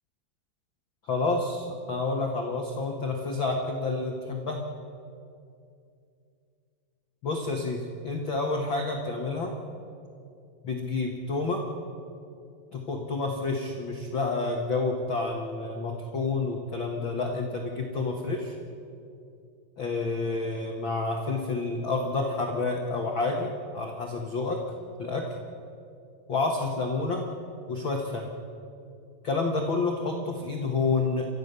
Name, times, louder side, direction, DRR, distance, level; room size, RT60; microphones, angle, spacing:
voice 1, 1.0-4.6 7.2-9.5 10.6-11.6 12.7-18.5 19.8-24.6 25.0-25.3 26.3-27.3 27.7-28.3 29.2-31.3, left 3 dB, 65° left, 1 dB, 1.2 m, -29 dB
30.0 x 14.0 x 6.9 m, 2.5 s
omnidirectional pair, 4.7 m